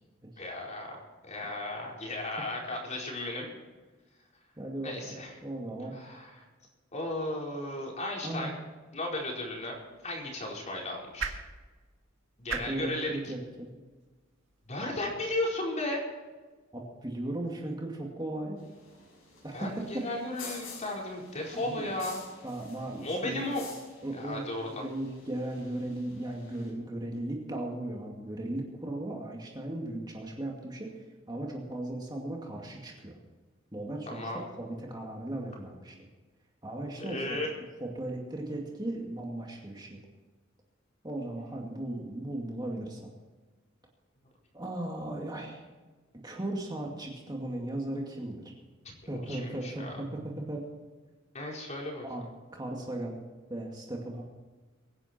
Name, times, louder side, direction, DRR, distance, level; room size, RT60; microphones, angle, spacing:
voice 1, 0.4-3.5 4.8-5.3 5.9-6.4 6.9-8.5 8.9-9.8 10.0-11.3 12.4-13.3 14.7-16.1 19.5-22.2 23.0-23.7 24.1-24.7 34.1-34.4 37.0-37.5 48.8-48.9 49.3-50.0 51.3-52.0, left 1 dB, 35° left, -2 dB, 4.5 m, -35 dB
voice 2, 4.6-6.0 8.2-8.5 12.6-13.7 16.7-18.6 19.4-20.1 21.5-21.9 22.4-23.4 24.0-33.2 33.7-34.3 34.6-36.0 36.6-37.4 37.8-40.0 41.0-43.1 44.5-45.7 46.2-48.5 49.1-50.6 52.0-52.3 52.5-53.2 53.5-54.2, right 1 dB, 20° right, 0 dB, 2.3 m, -37 dB
sound 1, 9.4-15.6, right 5 dB, 65° right, 1.9 m, -44 dB
sound 2, 18.6-26.7, left 4 dB, 80° left, 6.2 m, -50 dB
24.0 x 10.5 x 4.4 m, 1.3 s
head